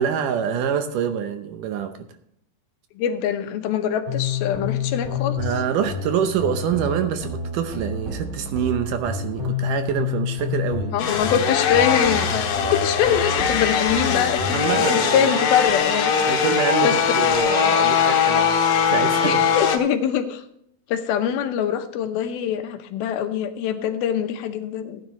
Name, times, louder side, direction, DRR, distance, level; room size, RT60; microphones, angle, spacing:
voice 1, 0.0-2.0 5.4-11.0 14.4-15.3 16.3-19.4, right 8 dB, 75° right, 8 dB, 2.2 m, -26 dB
voice 2, 3.0-5.4 10.9-16.1 16.8-16.9 19.2-20.4 20.9-25.0, left 8 dB, 85° left, 7 dB, 2.9 m, -24 dB
sound 1, 4.1-14.7, left 4 dB, 10° right, 4.0 m, -29 dB
sound 2, 11.0-19.8, left 8 dB, 70° left, 2.8 m, -21 dB
sound 3, 14.8-19.7, right 7 dB, 55° right, 1.5 m, -32 dB
16.5 x 9.5 x 3.1 m, 0.72 s
omnidirectional pair, 4.2 m